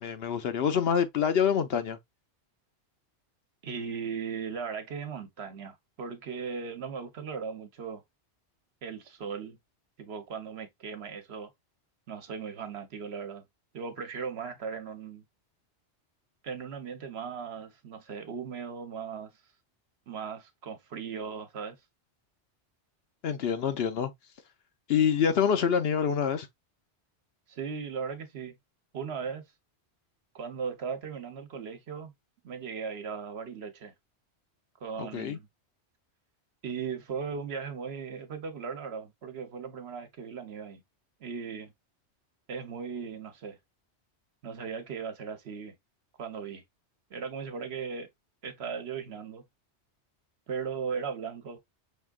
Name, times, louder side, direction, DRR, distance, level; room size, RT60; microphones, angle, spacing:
voice 1, 0.0-2.0 23.2-24.1 24.9-26.5 35.0-35.4, left 7 dB, 65° left, 0.9 m, -26 dB
voice 2, 3.6-8.0 8.8-9.6 10.0-11.5 12.1-13.4 13.7-15.2 16.4-19.3 20.1-21.8 27.5-28.5 28.9-29.4 30.3-32.1 32.4-33.9 34.8-35.5 36.6-40.8 41.2-41.7 42.5-43.6 44.4-45.8 46.2-46.6 47.1-48.1 48.4-49.4 50.5-51.6, right 6 dB, 65° right, 1.1 m, -37 dB
5.6 x 3.5 x 2.3 m
omnidirectional pair, 1.2 m